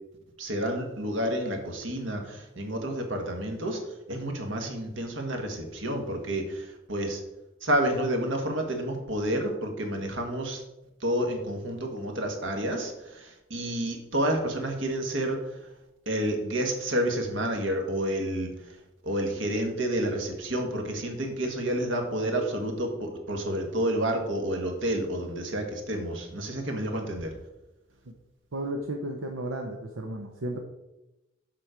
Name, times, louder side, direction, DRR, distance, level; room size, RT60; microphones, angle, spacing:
voice 1, 0.4-3.8 4.1-7.2 7.6-10.6 11.0-15.4 16.0-18.5 19.0-27.3, right 1 dB, 70° right, 3 dB, 1.7 m, -29 dB
voice 2, 28.5-30.6, right 1 dB, 85° right, 2 dB, 0.8 m, -33 dB
7.5 x 6.1 x 5.1 m, 0.95 s
head